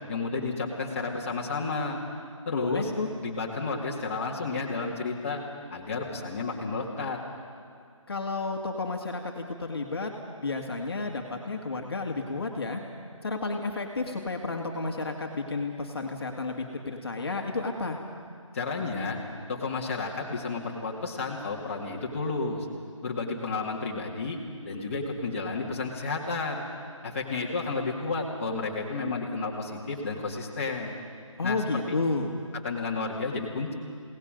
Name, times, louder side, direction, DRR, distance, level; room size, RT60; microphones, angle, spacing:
voice 1, 0.1-2.0 2.5-2.9 3.2-5.4 5.7-7.2 18.5-19.2 19.5-22.7 23.0-24.4 24.6-26.6 27.0-30.9 31.4-31.9 32.6-33.7, left 3 dB, 25° left, -3 dB, 2.1 m, -31 dB
voice 2, 2.5-3.1 8.1-10.1 10.4-12.8 13.2-18.0 31.4-32.3, left 3 dB, 45° left, 2 dB, 2.0 m, -31 dB
29.0 x 18.5 x 5.2 m, 2.2 s
figure-of-eight pair, 160°, 17 cm